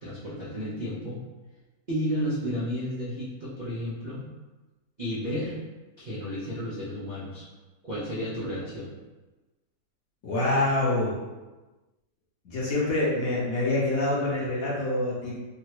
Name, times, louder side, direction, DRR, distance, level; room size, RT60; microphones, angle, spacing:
voice 1, 0.0-1.2 1.9-4.2 5.0-5.6 6.0-7.5 7.8-8.9, equal, 70° right, -10 dB, 0.4 m, -32 dB
voice 2, 10.2-11.1 12.4-15.3, left 2 dB, 65° left, -6 dB, 1.0 m, -26 dB
3.6 x 2.2 x 2.9 m, 1.2 s
omnidirectional pair, 1.9 m